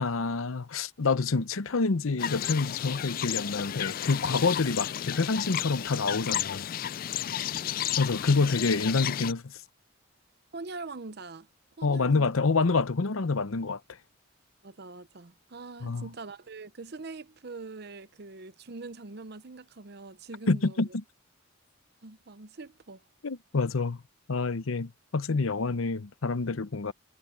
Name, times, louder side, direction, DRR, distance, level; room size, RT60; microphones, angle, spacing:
voice 1, 0.0-6.6 8.0-9.5 11.8-13.8 15.8-16.1 20.5-20.9 23.2-24.0 24.3-26.9, left 4 dB, 90° left, 0.8 m, -27 dB
sound 1, 2.2-9.3, left 11 dB, 45° left, 0.3 m, -33 dB
voice 2, 7.4-8.0 10.5-11.5 11.8-12.3 14.6-20.9 22.0-23.0, right 3 dB, 55° right, 0.8 m, -43 dB
head